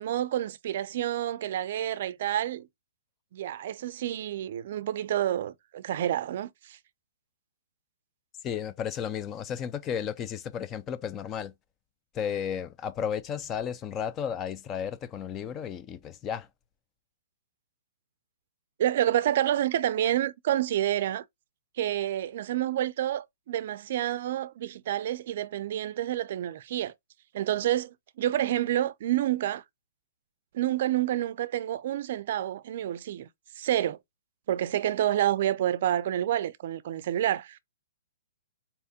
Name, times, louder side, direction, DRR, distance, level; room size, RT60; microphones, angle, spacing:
voice 1, 0.0-2.7 3.3-6.8 18.8-21.2 21.8-26.9 27.3-29.6 30.5-33.3 33.6-34.0 34.5-37.6, right 12 dB, 55° right, 0.4 m, -28 dB
voice 2, 8.4-11.5 12.1-16.5, left 8 dB, 20° left, 0.4 m, -33 dB
4.2 x 3.4 x 2.7 m
hypercardioid pair, 150°, 0 cm